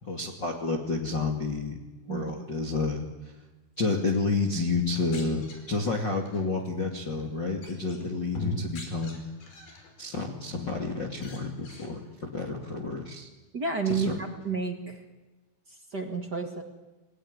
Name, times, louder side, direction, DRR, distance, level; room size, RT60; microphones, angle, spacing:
voice 1, 0.0-1.8 2.0-3.0 3.8-9.2 10.0-13.3 13.9-14.1, left 3 dB, 30° left, 1 dB, 2.5 m, -30 dB
sound 1, 4.8-6.4 7.0-7.3 7.6-9.9 10.3-10.8 11.1-11.9, left 2 dB, 70° left, 7.1 m, -40 dB
voice 2, 13.5-15.0 15.7-16.6, right 4 dB, 35° right, 4 dB, 2.0 m, -31 dB
29.0 x 20.5 x 9.8 m, 1.2 s
omnidirectional pair, 4.7 m